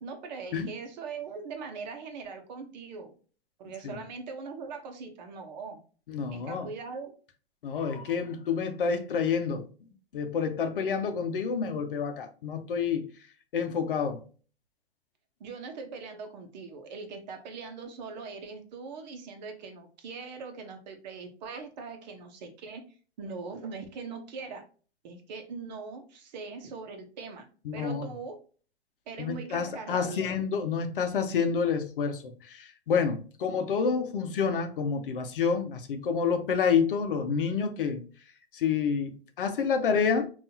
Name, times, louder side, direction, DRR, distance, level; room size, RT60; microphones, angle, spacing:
voice 1, 0.0-3.2 3.6-5.8 6.3-7.1 15.4-22.8 23.2-24.6 25.0-28.4 29.1-30.3, right 4 dB, 40° right, 1.1 m, -41 dB
voice 2, 6.1-6.7 7.6-9.7 10.1-13.0 13.5-14.2 27.7-28.1 29.2-38.0 38.5-39.1 39.4-40.3, left 6 dB, 55° left, 0.8 m, -28 dB
5.3 x 2.7 x 2.7 m
figure-of-eight pair, 105°, 33 cm